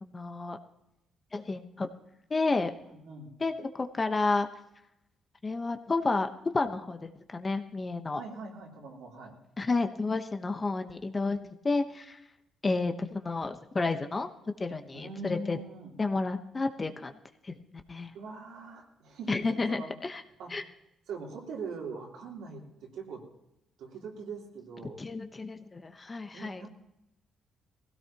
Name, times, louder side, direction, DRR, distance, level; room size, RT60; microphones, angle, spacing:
voice 1, 0.0-0.6 1.3-1.9 2.3-2.7 3.4-4.5 5.4-8.2 9.6-12.2 12.6-14.3 14.6-15.6 16.0-17.2 17.4-18.1 19.3-20.2 20.5-20.6 25.0-26.7, left 3 dB, 30° left, 7 dB, 1.0 m, -31 dB
voice 2, 2.9-3.3 8.1-9.3 14.9-15.9 18.1-19.9 20.4-20.5 21.1-23.2 23.8-25.0 26.3-26.7, right 4 dB, 85° right, -2 dB, 3.4 m, -42 dB
19.5 x 16.5 x 2.9 m, 0.84 s
cardioid pair, 90°, 0 cm